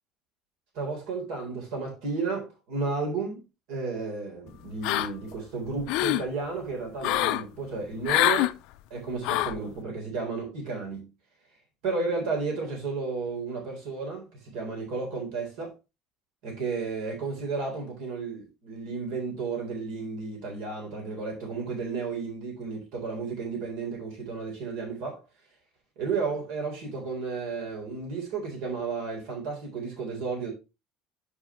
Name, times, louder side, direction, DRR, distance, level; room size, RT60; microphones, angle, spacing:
voice 1, 0.7-3.4 3.7-8.5 8.9-11.1 11.8-15.7 16.4-25.2 26.0-30.5, right 4 dB, 70° right, 3.8 m, -33 dB
sound 1, 4.8-5.4 5.7-6.3 7.0-7.4 8.1-8.5 9.2-9.6, left 16 dB, 65° left, 0.5 m, -25 dB
9.9 x 5.1 x 3.1 m
cardioid pair, 165°, 0 cm